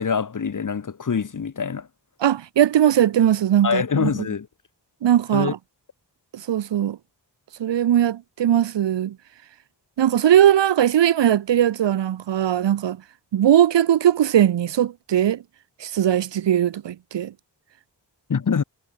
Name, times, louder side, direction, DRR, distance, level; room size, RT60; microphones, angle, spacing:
voice 1, 0.0-1.9 3.6-4.5 5.3-5.5 18.3-18.6, left 6 dB, 45° left, 0.8 m, -24 dB
voice 2, 2.2-4.1 5.0-5.6 6.3-7.0 7.6-9.2 10.0-13.0 13.3-15.4 15.8-17.3, right 10 dB, 75° right, 0.6 m, -19 dB
wide cardioid pair, 45°, 43 cm